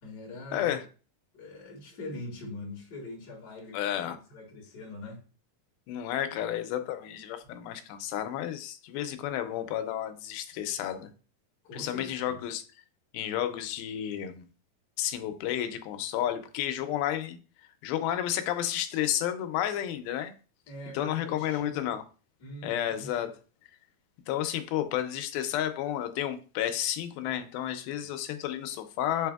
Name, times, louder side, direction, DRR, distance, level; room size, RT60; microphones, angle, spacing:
voice 1, 0.0-0.7 1.3-3.8 4.1-5.2 7.4-7.5 11.6-12.4 20.7-21.9 22.4-23.1, left 1 dB, 40° left, 1.6 m, -43 dB
voice 2, 0.5-0.9 3.7-4.2 5.9-11.1 11.7-12.6 13.1-14.5 15.0-17.4 17.8-20.3 20.9-22.0 22.6-23.3 24.3-29.3, left 11 dB, 90° left, 2.4 m, -31 dB
6.7 x 3.3 x 2.3 m
omnidirectional pair, 4.3 m